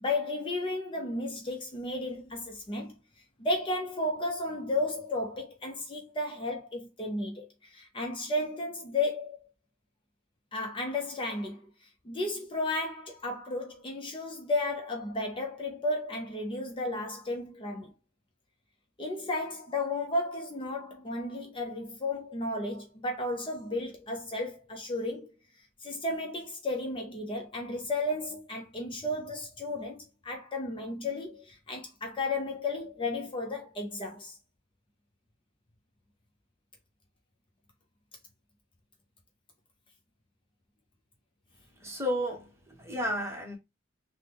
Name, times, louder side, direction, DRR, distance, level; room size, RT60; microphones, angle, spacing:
voice 1, 0.0-3.0 3.4-9.4 10.5-17.9 19.0-25.3 25.8-34.4, left 2 dB, 25° left, 0.5 m, -33 dB
voice 2, 41.8-43.6, equal, 15° right, 0.9 m, -32 dB
3.5 x 2.0 x 2.9 m
head